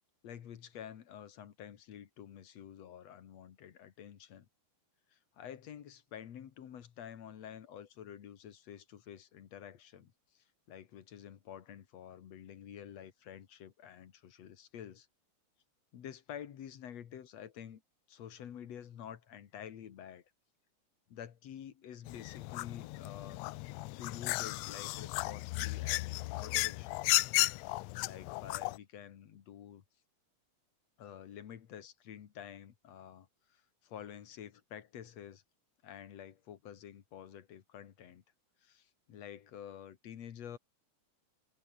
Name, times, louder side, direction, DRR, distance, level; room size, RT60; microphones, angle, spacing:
voice 1, 0.2-4.5 5.1-15.1 15.9-17.8 18.1-20.2 21.1-23.4 24.0-27.0 27.7-29.8 31.0-35.4 35.8-38.2 38.6-40.6, left 9 dB, 60° left, 2.7 m, -49 dB
sound 1, 22.1-28.8, left 20 dB, 80° left, 1.5 m, -34 dB
omnidirectional pair, 3.4 m